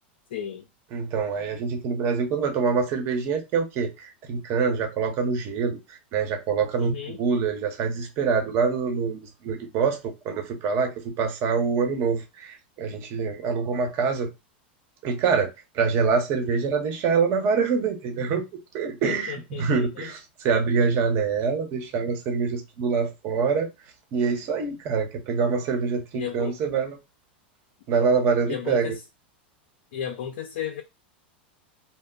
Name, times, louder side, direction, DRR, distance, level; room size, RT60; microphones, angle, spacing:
voice 1, 0.3-0.6 6.8-7.2 19.0-20.1 26.1-26.6 28.5-29.0 29.9-30.8, left 9 dB, 70° left, 0.5 m, -34 dB
voice 2, 0.9-14.3 15.0-15.5 15.7-18.4 18.7-23.7 24.1-27.0 27.9-28.9, right 5 dB, 45° right, 0.9 m, -25 dB
2.1 x 2.1 x 3.8 m
hypercardioid pair, 115°, 6 cm